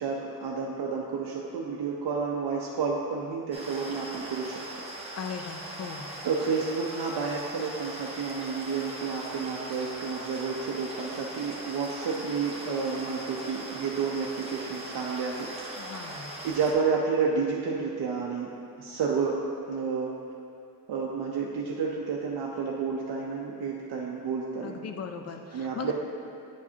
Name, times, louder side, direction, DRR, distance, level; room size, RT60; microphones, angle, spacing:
voice 1, 0.0-4.6 6.2-15.5 16.1-18.5 18.8-19.4 19.7-20.1 20.9-24.8 25.5-25.9, right 5 dB, 75° right, -3 dB, 0.7 m, -30 dB
sound 1, 3.5-16.7, right 1 dB, 15° right, 0.9 m, -40 dB
voice 2, 5.2-6.1 15.8-16.3 24.6-25.9, left 6 dB, 40° left, 6 dB, 0.5 m, -38 dB
9.4 x 4.9 x 2.7 m, 2.6 s
wide cardioid pair, 125°, 39 cm